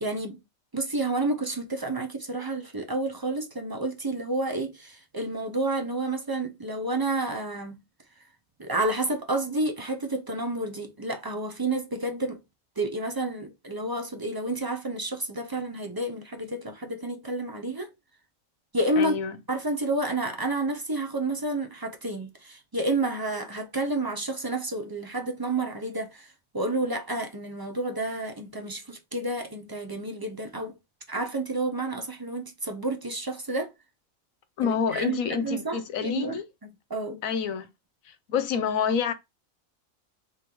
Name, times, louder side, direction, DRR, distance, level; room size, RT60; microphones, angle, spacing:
voice 1, 0.0-0.4 0.7-7.8 8.6-12.4 12.8-17.9 18.7-19.1 19.5-30.8 31.1-33.7 34.6-36.4 36.9-37.2, right 2 dB, 25° right, 0.5 m, -30 dB
voice 2, 19.0-19.4 34.6-36.5 37.2-37.7 38.3-39.1, left 7 dB, 80° left, 1.2 m, -27 dB
3.6 x 3.0 x 3.4 m
omnidirectional pair, 1.4 m